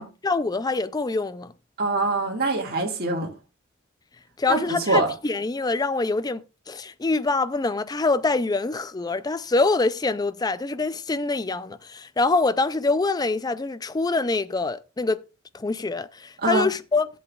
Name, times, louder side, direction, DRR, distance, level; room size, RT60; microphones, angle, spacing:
voice 1, 0.2-1.5 4.4-6.4 6.7-15.2 15.5-17.1, left 3 dB, 20° left, 0.4 m, -25 dB
voice 2, 1.8-3.3 4.5-5.1 16.4-16.7, right 3 dB, 45° right, 1.9 m, -24 dB
14.5 x 7.9 x 2.4 m
head